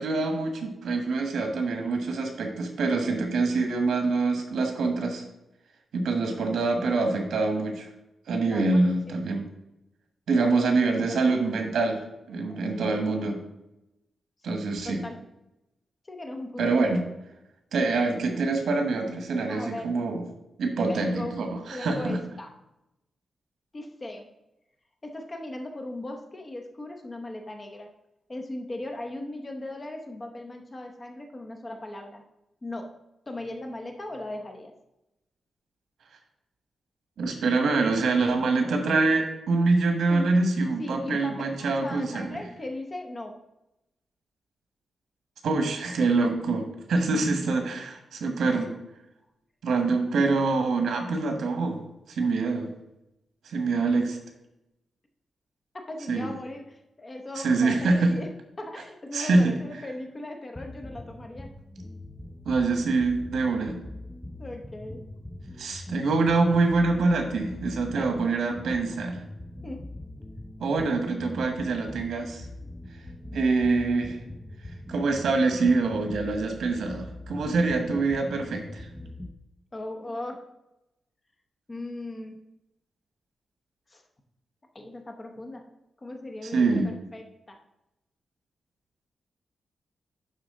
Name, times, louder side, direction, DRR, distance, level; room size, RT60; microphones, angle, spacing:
voice 1, 0.0-5.2 5.9-7.9 8.3-9.5 10.3-12.0 12.3-13.4 14.4-15.0 16.6-17.0 17.7-20.2 20.6-22.2 37.2-42.4 45.4-48.7 49.6-51.8 52.1-52.7 53.4-54.2 56.1-56.3 57.4-58.1 59.1-59.5 62.4-63.8 65.6-69.2 70.6-72.5 73.3-74.2 74.9-78.9 86.4-86.9, right 3 dB, 80° right, 4 dB, 1.4 m, -25 dB
voice 2, 8.4-9.2 10.3-11.3 12.5-12.9 14.5-15.2 16.0-16.8 19.4-19.9 20.8-21.4 21.7-22.5 23.7-24.3 25.0-27.9 28.3-32.2 32.6-32.9 33.3-34.7 40.1-40.3 40.8-43.4 48.6-48.7 55.9-58.3 58.6-61.5 64.4-65.1 67.9-68.2 69.6-69.9 77.4-77.7 79.7-80.4 81.7-82.4 83.9-84.0 84.7-85.7 86.0-87.6, left 1 dB, 20° left, 3 dB, 0.9 m, -38 dB
sound 1, 60.6-79.3, left 1 dB, 5° left, 0.4 m, -42 dB
11.0 x 4.0 x 3.7 m, 0.90 s
wide cardioid pair, 170°, 0 cm